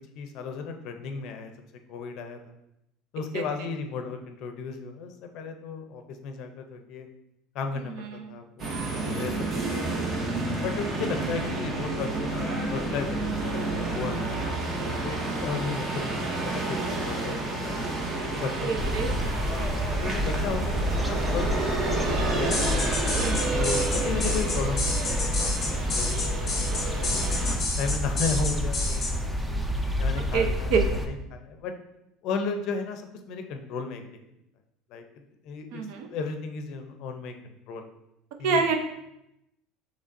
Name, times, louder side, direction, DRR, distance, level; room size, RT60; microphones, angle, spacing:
voice 1, 0.2-1.5 1.9-2.4 3.1-7.1 7.5-9.3 9.7-9.8 10.6-14.2 14.8-18.0 18.4-19.4 20.0-23.1 23.5-27.4 27.8-29.6 30.0-31.7 32.2-33.0 33.3-34.1 34.9-35.0 35.4-35.8 36.1-37.9 38.4-38.8, left 5 dB, 50° left, 6 dB, 0.5 m, -35 dB
voice 2, 7.8-8.3 18.6-19.1 23.2-23.6 30.3-30.9 35.7-36.1 38.4-38.8, right 5 dB, 70° right, 5 dB, 0.6 m, -27 dB
sound 1, 8.6-27.6, right 2 dB, 30° right, 0.7 m, -30 dB
sound 2, 18.8-31.1, equal, 5° right, 0.3 m, -29 dB
sound 3, 22.5-29.1, left 3 dB, 20° left, 0.7 m, -30 dB
6.4 x 3.2 x 2.6 m, 0.85 s
cardioid pair, 160°, 0 cm